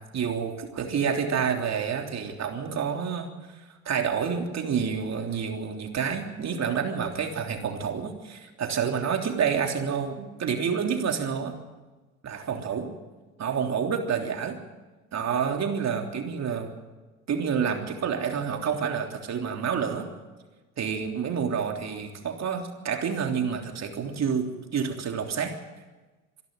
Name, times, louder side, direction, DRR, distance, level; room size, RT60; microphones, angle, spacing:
voice 1, 0.1-3.3 3.9-11.5 12.2-12.9 13.4-14.6 15.1-16.7 17.3-20.1 20.8-25.6, right 6 dB, 40° right, 3 dB, 3.4 m, -28 dB
25.5 x 12.0 x 9.5 m, 1.2 s
hypercardioid pair, 70°, 40 cm